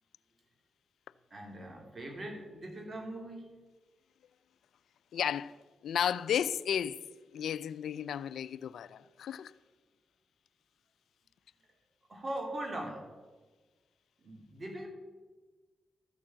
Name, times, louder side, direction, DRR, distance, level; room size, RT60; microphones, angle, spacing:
voice 1, 1.3-3.6 12.1-13.1 14.2-14.9, right 1 dB, 40° right, 3.5 m, -41 dB
voice 2, 5.1-5.5 5.8-7.0 7.3-9.5, left 9 dB, 80° left, 0.4 m, -33 dB
13.5 x 7.2 x 7.5 m
cardioid pair, 55°, 0 cm